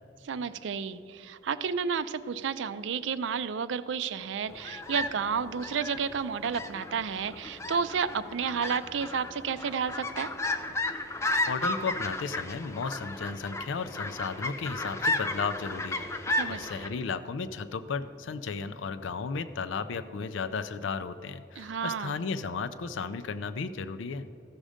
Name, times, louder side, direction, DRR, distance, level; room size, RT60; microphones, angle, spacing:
voice 1, 0.2-10.3 16.3-16.9 21.6-22.1, right 6 dB, 70° right, 13 dB, 0.4 m, -31 dB
sound 1, 4.5-16.9, left 2 dB, 15° left, 0.5 m, -34 dB
voice 2, 11.5-24.3, left 5 dB, 75° left, 11 dB, 0.4 m, -34 dB
14.5 x 6.3 x 5.0 m, 2.7 s
head